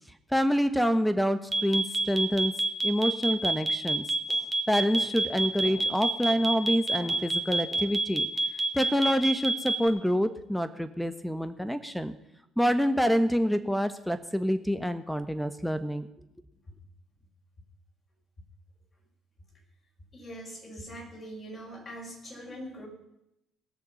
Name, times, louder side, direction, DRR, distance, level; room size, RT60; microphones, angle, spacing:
voice 1, 0.3-2.5 2.8-4.4 4.7-8.3 8.7-12.1 12.6-16.1, equal, ahead, 12 dB, 1.3 m, -27 dB
sound 1, 1.5-9.9, right 2 dB, 20° right, 1.9 m, -26 dB
voice 2, 20.1-22.9, equal, 35° left, -1 dB, 6.1 m, -42 dB
19.5 x 6.7 x 5.6 m, 0.83 s
hypercardioid pair, 55°, 0 cm